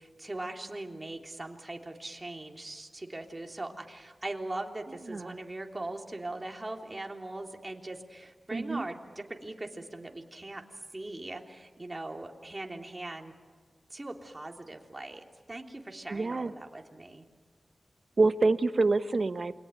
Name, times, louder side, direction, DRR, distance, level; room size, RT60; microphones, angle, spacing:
voice 1, 0.0-10.6 10.9-13.3 13.9-17.3, right 2 dB, 30° right, 2 dB, 3.3 m, -40 dB
voice 2, 8.5-8.9 16.1-16.5 18.2-19.6, right 3 dB, 55° right, 10 dB, 1.3 m, -26 dB
28.5 x 22.5 x 9.2 m, 1.5 s
cardioid pair, 55°, 0 cm